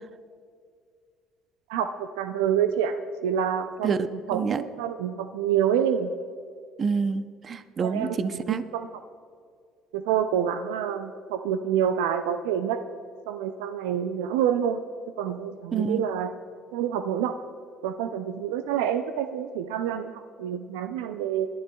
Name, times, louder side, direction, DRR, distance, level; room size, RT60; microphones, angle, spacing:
voice 1, 1.7-4.0 4.3-6.1 7.8-8.9 9.9-12.8 13.3-14.8 15.2-16.3 16.7-17.4 17.8-21.5, right 9 dB, 85° right, 9 dB, 0.4 m, -27 dB
voice 2, 4.3-4.6 6.8-8.6 15.7-16.0, right 5 dB, 45° right, 12 dB, 0.6 m, -27 dB
22.0 x 11.5 x 2.3 m, 2.1 s
hypercardioid pair, 65°, 0 cm